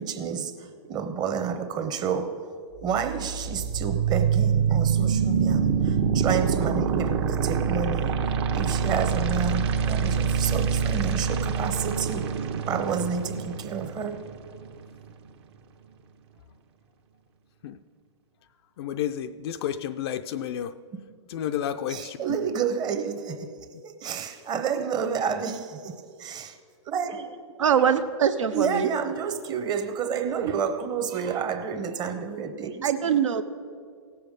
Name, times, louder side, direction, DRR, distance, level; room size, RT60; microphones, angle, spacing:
voice 1, 0.0-2.5 2.8-8.2 8.5-12.4 12.6-14.3 21.9-26.6 26.9-27.4 28.5-33.2, right 6 dB, 25° right, 0.9 m, -30 dB
sound 1, 2.8-14.8, right 6 dB, 60° right, 1.1 m, -25 dB
voice 2, 18.8-20.7 21.3-22.2, left 10 dB, 55° left, 0.4 m, -31 dB
voice 3, 27.6-28.9 30.3-30.5 32.8-33.4, right 8 dB, 80° right, 0.8 m, -23 dB
17.0 x 7.0 x 5.1 m
hypercardioid pair, 120°, 16 cm